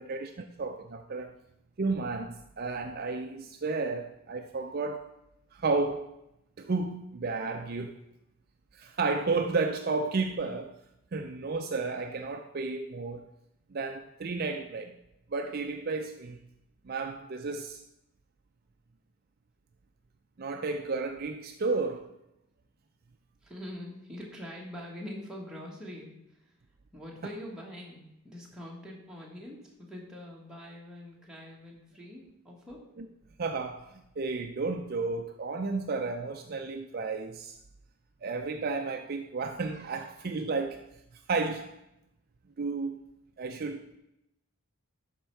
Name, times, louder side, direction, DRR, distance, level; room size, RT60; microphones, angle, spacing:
voice 1, 0.0-1.4 1.8-5.0 5.5-6.1 6.6-8.0 8.7-10.7 11.1-13.2 13.7-15.0 15.3-16.4 16.8-17.8 20.4-22.1 33.4-37.6 38.2-40.8 41.3-41.7 42.6-43.0 43.4-44.0, right 3 dB, 45° right, 0.4 m, -32 dB
voice 2, 23.4-26.6 26.9-32.8, left 1 dB, 5° right, 1.5 m, -44 dB
11.5 x 4.5 x 4.6 m
head